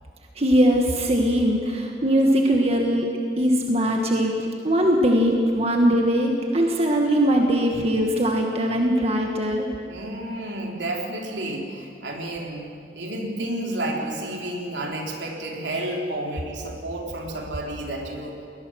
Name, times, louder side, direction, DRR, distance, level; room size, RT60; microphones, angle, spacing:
voice 1, 0.4-3.1 3.4-9.7, equal, 35° right, 1 dB, 1.6 m, -21 dB
voice 2, 9.9-18.3, right 1 dB, 80° right, 0 dB, 3.4 m, -31 dB
20.5 x 19.5 x 6.4 m, 2.5 s
head